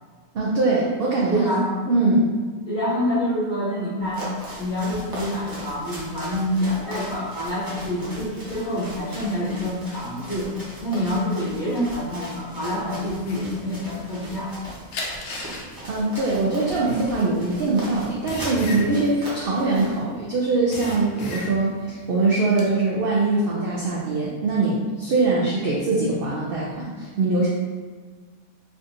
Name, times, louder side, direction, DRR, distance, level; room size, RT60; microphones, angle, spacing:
voice 1, 0.3-1.5 1.9-2.3 15.9-27.5, right 3 dB, 70° right, -5 dB, 0.5 m, -22 dB
voice 2, 1.3-1.7 2.7-10.5 10.8-14.5, equal, 40° left, -8 dB, 0.8 m, -27 dB
sound 1, 4.0-20.0, equal, 20° right, 0.7 m, -39 dB
sound 2, 13.2-14.5 14.9-20.2 20.5-21.8 22.2-22.7, left 3 dB, 90° left, 1.1 m, -34 dB
3.5 x 2.6 x 2.6 m, 1.5 s
omnidirectional pair, 1.5 m